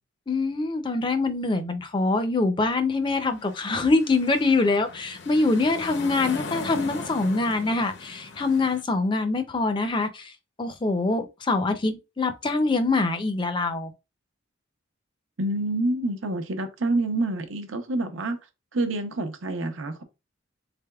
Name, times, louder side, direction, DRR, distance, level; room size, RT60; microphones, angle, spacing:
voice 1, 0.3-10.3 10.6-13.9, left 3 dB, 25° left, 0.4 m, -24 dB
sound 1, 3.0-8.8, left 4 dB, 65° left, 0.6 m, -39 dB
voice 2, 15.4-18.4 18.7-20.0, right 2 dB, 85° right, 0.7 m, -27 dB
3.8 x 3.3 x 2.3 m
head